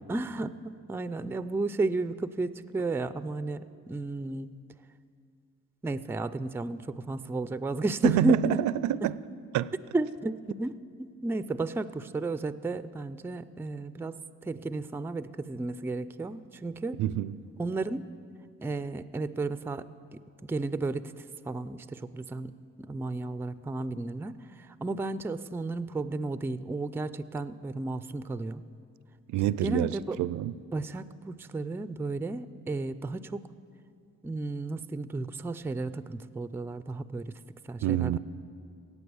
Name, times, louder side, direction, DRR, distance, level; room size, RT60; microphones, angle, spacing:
voice 1, 0.1-0.6 0.9-4.5 5.8-8.6 9.0-9.1 9.9-10.7 11.0-14.2 14.5-17.0 17.6-18.1 18.6-19.8 20.4-21.0 21.5-22.5 22.9-24.4 24.8-28.6 29.6-30.2 30.7-33.4 34.2-37.3 37.7-38.2, right 2 dB, 10° right, 0.4 m, -32 dB
voice 2, 8.0-9.2 9.5-9.7 17.0-17.4 29.3-30.6 37.8-38.2, right 13 dB, 75° right, 0.5 m, -27 dB
16.5 x 8.5 x 7.0 m
cardioid pair, 90°, 30 cm